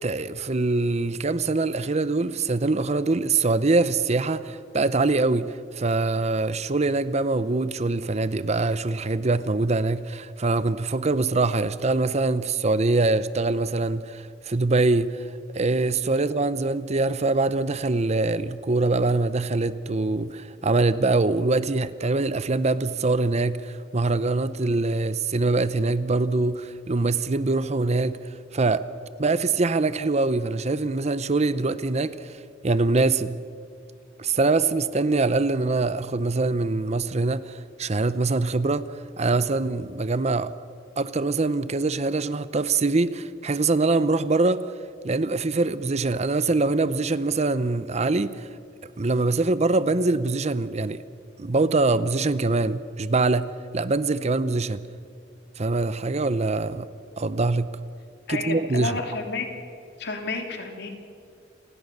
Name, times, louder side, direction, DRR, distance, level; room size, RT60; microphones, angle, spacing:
voice 1, 0.0-15.2 15.5-28.2 28.5-28.8 29.2-32.3 32.6-33.4 34.2-38.9 39.2-40.5 41.0-44.6 45.0-48.5 49.0-51.0 51.4-53.5 53.7-54.9 55.6-56.9 57.2-57.7 58.3-59.0, right 3 dB, 35° right, 0.7 m, -23 dB
voice 2, 58.3-59.5 60.0-60.9, left 3 dB, 65° left, 3.2 m, -31 dB
28.5 x 19.0 x 6.7 m
head